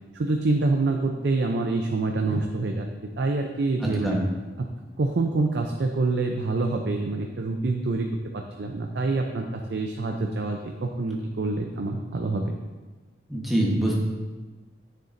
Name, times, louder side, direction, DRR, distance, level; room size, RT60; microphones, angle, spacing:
voice 1, 0.1-2.9 3.2-4.2 5.0-8.1 8.3-12.4, right 3 dB, 65° right, 3 dB, 0.5 m, -26 dB
voice 2, 3.8-4.2 13.3-13.9, right 1 dB, ahead, -4 dB, 1.1 m, -24 dB
9.4 x 6.6 x 2.6 m, 1.3 s
head